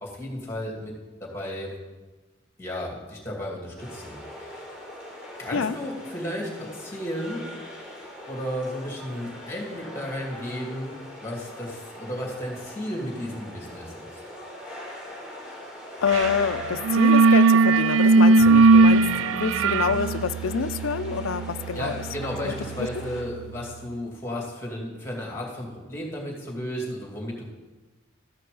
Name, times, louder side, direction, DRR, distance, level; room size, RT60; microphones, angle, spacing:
voice 1, 0.0-1.7 2.6-4.7 5.4-7.4 8.3-11.0 11.2-14.1 21.7-27.4, equal, 15° left, -1 dB, 2.4 m, -34 dB
sound 1, 3.8-23.2, left 1 dB, 5° right, 3.2 m, -41 dB
voice 2, 16.0-22.0 22.4-22.9, left 6 dB, 85° left, 14 dB, 0.5 m, -27 dB
sound 2, 16.1-16.4 16.6-23.3, right 3 dB, 75° right, 0.3 m, -19 dB
13.5 x 10.5 x 3.9 m, 1.2 s
head